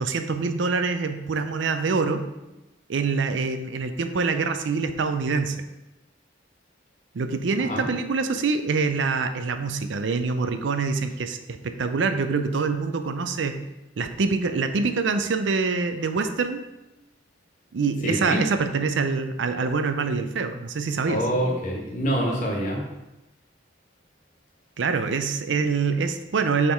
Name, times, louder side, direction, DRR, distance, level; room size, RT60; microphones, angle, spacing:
voice 1, 0.0-2.2 2.9-5.6 7.1-13.6 14.0-16.6 17.7-21.2 24.8-26.7, right 4 dB, 75° right, 8 dB, 0.5 m, -25 dB
voice 2, 18.0-18.4 21.0-22.8, equal, 40° left, -1 dB, 1.4 m, -26 dB
6.5 x 3.6 x 4.5 m, 0.97 s
head